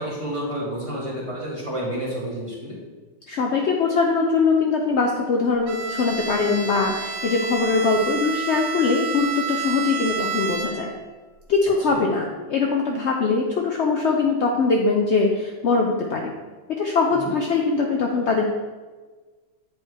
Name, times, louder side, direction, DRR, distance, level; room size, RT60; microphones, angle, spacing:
voice 1, 0.0-2.8 11.9-12.0 17.1-17.3, right 1 dB, 20° right, -6 dB, 1.7 m, -30 dB
voice 2, 3.3-10.9 11.5-16.3 16.7-18.4, left 4 dB, 75° left, 1 dB, 0.6 m, -22 dB
Bowed string instrument, 5.7-11.1, right 5 dB, 90° right, 1.3 m, -30 dB
8.2 x 3.4 x 4.7 m, 1.4 s
omnidirectional pair, 1.9 m